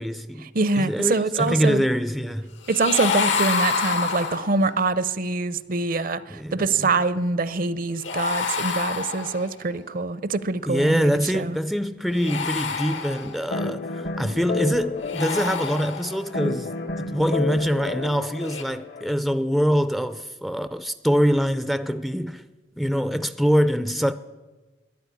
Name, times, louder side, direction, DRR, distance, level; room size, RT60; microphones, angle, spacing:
voice 1, 0.0-0.5 0.8-2.5 6.3-6.9 10.7-16.7 17.0-22.4 22.8-24.1, equal, ahead, 0.4 m, -24 dB
voice 2, 0.5-1.8 2.7-11.6, right 3 dB, 50° right, 0.6 m, -24 dB
sound 1, 2.6-4.8 8.0-9.7 12.1-13.6 15.0-16.3 18.4-18.6, left 5 dB, 85° left, 1.6 m, -28 dB
sound 2, 13.5-19.2, left 3 dB, 50° left, 0.8 m, -31 dB
13.0 x 10.5 x 9.8 m
head